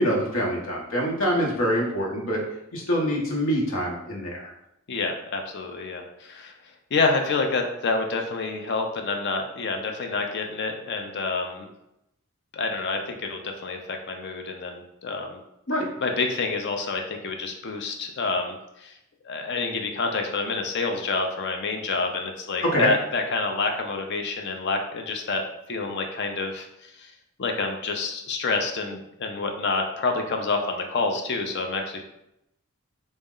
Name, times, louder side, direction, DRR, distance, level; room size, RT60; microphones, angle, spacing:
voice 1, 0.0-2.4 2.7-4.5 15.7-15.9 22.6-22.9, equal, 70° left, -2 dB, 0.9 m, -25 dB
voice 2, 4.9-6.5 6.9-11.7 12.5-15.4 16.0-18.9 19.2-25.4 25.7-27.1 27.4-32.0, left 3 dB, 55° left, 3 dB, 0.5 m, -28 dB
4.0 x 2.1 x 3.7 m, 0.84 s
head